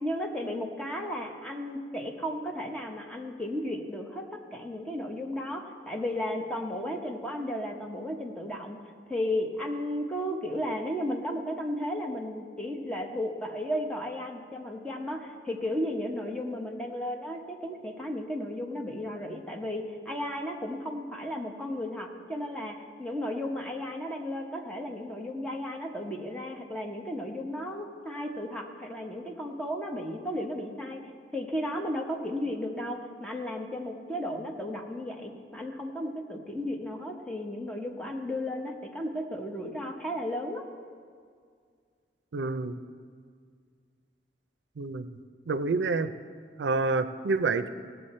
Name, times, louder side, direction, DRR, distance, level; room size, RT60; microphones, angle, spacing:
voice 1, 0.0-8.8 9.1-31.0 31.3-40.6, left 1 dB, 5° left, 1 dB, 0.9 m, -34 dB
voice 2, 42.3-42.7 44.8-45.1 45.5-46.1 46.6-47.7, right 3 dB, 85° right, 12 dB, 0.5 m, -28 dB
17.5 x 7.0 x 4.3 m, 2.1 s
head